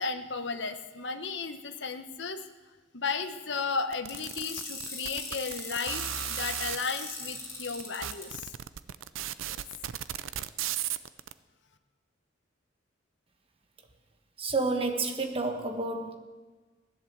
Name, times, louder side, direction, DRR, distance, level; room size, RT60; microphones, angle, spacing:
voice 1, 0.0-2.4 2.9-8.5 9.5-9.6, left 4 dB, 60° left, 8 dB, 1.1 m, -34 dB
sound 1, 3.9-6.8 7.5-7.6 7.8-11.3, right 11 dB, 85° right, 0.5 m, -35 dB
sound 2, 4.1-8.2, left 3 dB, 15° left, 3.9 m, -39 dB
voice 2, 14.4-16.2, right 3 dB, 30° right, 5 dB, 1.4 m, -30 dB
16.0 x 11.0 x 7.4 m, 1.4 s
head